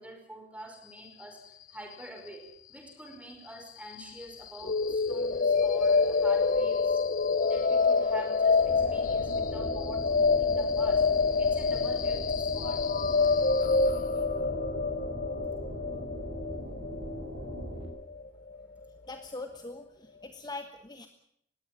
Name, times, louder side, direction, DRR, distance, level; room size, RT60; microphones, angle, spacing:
voice 1, 0.0-7.0 7.4-11.1 11.4-12.8, right 1 dB, 5° right, 3 dB, 5.4 m, -46 dB
sound 1, 4.6-18.6, left 4 dB, 45° left, 0.8 m, -27 dB
sound 2, 8.5-17.9, equal, 60° right, 6.1 m, -40 dB
voice 2, 19.1-21.1, left 2 dB, 20° left, 7 dB, 1.3 m, -42 dB
20.0 x 16.5 x 9.1 m, 0.69 s
head